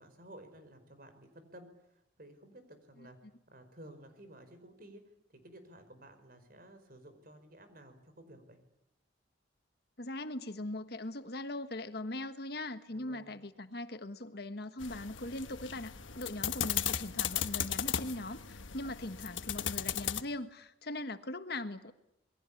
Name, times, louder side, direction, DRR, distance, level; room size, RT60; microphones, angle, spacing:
voice 1, 0.0-8.6 12.9-13.3, right 1 dB, 50° right, 9 dB, 5.1 m, -54 dB
voice 2, 10.0-21.9, left 2 dB, 55° left, 10 dB, 1.4 m, -40 dB
sound 1, 14.8-20.2, left 9 dB, 85° left, 1.3 m, -36 dB
28.0 x 22.0 x 8.6 m, 0.83 s
head